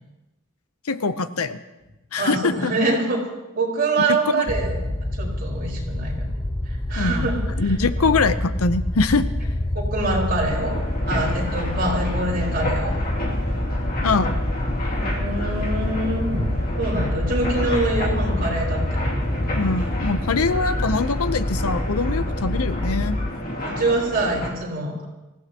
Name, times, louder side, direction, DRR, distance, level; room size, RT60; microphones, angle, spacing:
voice 1, 0.9-1.6 2.1-2.7 4.1-4.5 7.0-7.3 7.6-9.3 14.0-14.4 19.5-23.2, left 4 dB, 75° left, 12 dB, 0.8 m, -23 dB
voice 2, 2.2-3.2 3.5-6.3 6.9-8.1 9.7-10.7 11.1-12.9 14.9-16.5 16.8-19.1 23.6-25.0, right 2 dB, 45° right, -3 dB, 4.8 m, -25 dB
sound 1, 4.5-23.3, left 1 dB, 15° left, 0.6 m, -26 dB
sound 2, 10.5-24.5, left 1 dB, 40° left, 2.7 m, -31 dB
25.0 x 16.0 x 3.0 m, 1.0 s
head